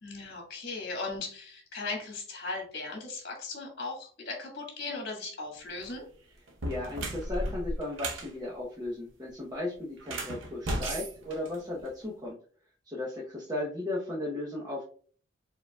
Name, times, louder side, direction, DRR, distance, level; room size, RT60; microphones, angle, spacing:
voice 1, 0.0-6.1, left 3 dB, 50° left, 1 dB, 1.5 m, -38 dB
sound 1, 5.7-6.0 6.5-8.3 10.0-12.0, right 1 dB, 70° right, 0.8 m, -35 dB
voice 2, 6.6-12.4 12.8-14.8, left 2 dB, 20° right, -6 dB, 0.8 m, -35 dB
4.7 x 3.8 x 2.2 m, 0.44 s
head